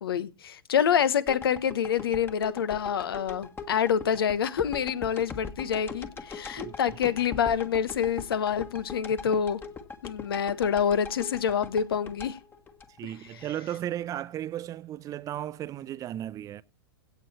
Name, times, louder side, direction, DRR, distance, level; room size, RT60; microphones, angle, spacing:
voice 1, 0.0-9.6 10.0-12.4, left 8 dB, 75° left, 1.1 m, -27 dB
sound 1, 1.3-13.4 13.9-14.0, left 4 dB, 15° left, 1.5 m, -41 dB
voice 2, 6.6-7.0 13.0-16.6, right 12 dB, 25° right, 0.7 m, -35 dB
16.5 x 6.8 x 4.2 m
hypercardioid pair, 110°, 13 cm